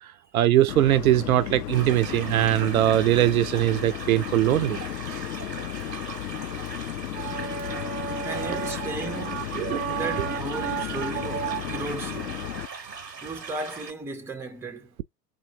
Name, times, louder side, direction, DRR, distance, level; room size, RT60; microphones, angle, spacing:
voice 1, 0.3-4.8 5.1-5.2 7.2-9.0 9.2-11.6, right 13 dB, 60° right, 0.6 m, -23 dB
sound 1, 0.7-12.7, left 13 dB, 75° left, 0.6 m, -34 dB
sound 2, 1.7-13.9, right 5 dB, 90° right, 0.8 m, -39 dB
voice 2, 8.2-9.5 9.9-12.4 13.2-14.9, right 3 dB, 5° right, 0.6 m, -35 dB
4.2 x 2.2 x 4.4 m
figure-of-eight pair, 90°, 48 cm